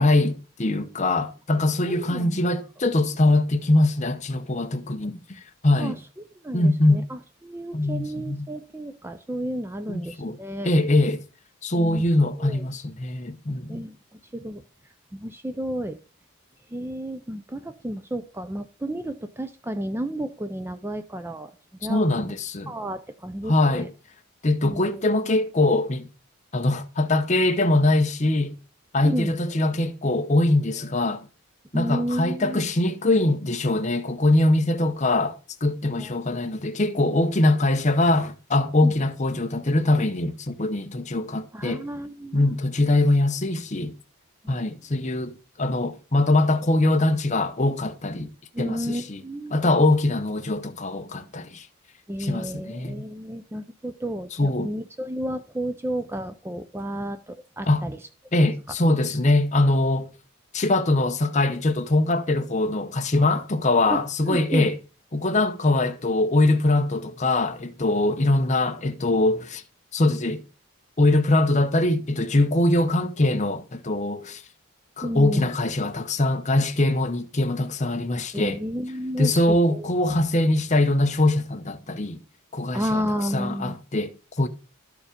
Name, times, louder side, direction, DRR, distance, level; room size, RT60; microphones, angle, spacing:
voice 1, 0.0-6.0 6.5-7.0 7.7-8.5 9.9-10.4 10.6-11.2 11.6-13.8 21.9-22.7 23.5-23.9 24.4-26.1 26.5-28.5 28.9-31.3 31.7-41.8 42.3-43.9 44.5-48.3 48.6-49.2 49.5-51.7 52.2-53.0 54.4-54.7 57.7-57.9 58.3-60.1 60.5-64.8 65.1-69.6 69.9-70.4 71.0-74.4 75.0-78.6 79.2-82.2 82.5-83.0 83.3-84.5, left 2 dB, 30° left, 0.7 m, -22 dB
voice 2, 1.8-2.5 5.8-6.0 6.4-10.7 11.7-12.1 12.4-12.6 13.7-14.0 14.3-14.6 15.1-16.0 16.7-21.6 21.8-22.3 22.7-23.9 24.6-25.0 29.0-29.3 31.7-32.7 36.0-36.1 38.8-38.9 41.5-42.6 44.4-44.6 48.5-49.6 52.1-58.1 63.9-64.7 75.0-75.5 78.3-79.9 82.7-83.8, right 1 dB, 10° right, 0.4 m, -32 dB
12.5 x 4.9 x 5.1 m
head